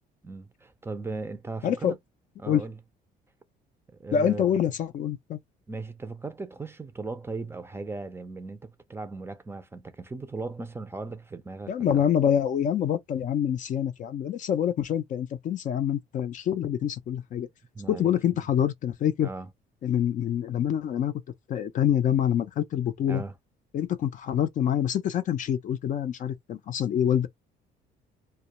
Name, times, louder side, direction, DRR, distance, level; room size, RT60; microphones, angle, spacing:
voice 1, 0.2-2.0 2.4-2.8 4.0-4.5 5.7-12.0 17.7-18.4 19.2-19.5 23.1-23.3, right 3 dB, 15° right, 0.4 m, -37 dB
voice 2, 1.6-1.9 2.5-2.7 4.1-5.4 11.7-17.5 17.9-19.3 19.8-21.1 21.5-23.2 23.7-27.3, left 9 dB, 50° left, 0.5 m, -26 dB
2.2 x 2.1 x 2.8 m
cardioid pair, 110°, 17 cm